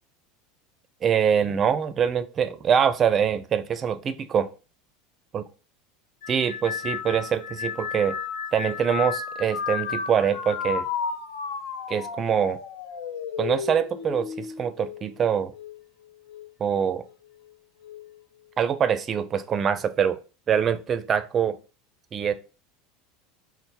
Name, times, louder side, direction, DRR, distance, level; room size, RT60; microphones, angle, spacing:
voice 1, 1.0-4.5 5.3-5.4 6.3-8.2 8.5-10.9 11.9-12.6 13.4-15.5 16.6-17.0 18.6-20.2 20.5-21.6 22.1-22.3, right 7 dB, 35° right, 0.4 m, -24 dB
sound 1, 6.2-15.8 16.3-16.9 17.8-18.2, left 7 dB, 75° left, 0.5 m, -33 dB
4.1 x 2.0 x 4.4 m
supercardioid pair, 110°, 0 cm